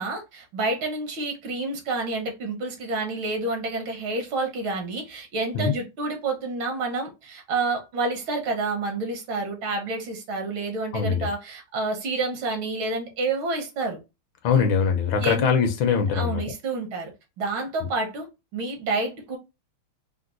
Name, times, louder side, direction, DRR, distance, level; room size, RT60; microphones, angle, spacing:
voice 1, 0.0-14.0 15.2-15.5 16.1-17.1 17.4-18.3 18.5-19.4, right 3 dB, 75° right, 1.7 m, -29 dB
voice 2, 10.9-11.3 14.4-16.4, left 6 dB, 75° left, 1.4 m, -22 dB
4.4 x 2.1 x 2.5 m
omnidirectional pair, 2.3 m